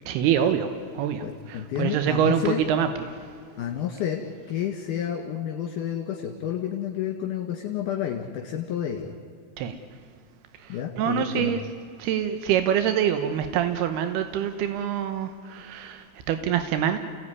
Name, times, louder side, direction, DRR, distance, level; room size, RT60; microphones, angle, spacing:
voice 1, 0.1-3.3 9.6-9.8 10.6-11.6 12.0-17.0, right 9 dB, 90° right, 9 dB, 3.1 m, -26 dB
voice 2, 1.2-2.6 3.6-4.2 4.5-9.1 10.7-11.5, left 10 dB, 60° left, 1 dB, 3.2 m, -30 dB
28.5 x 18.0 x 9.7 m, 2.2 s
omnidirectional pair, 4.4 m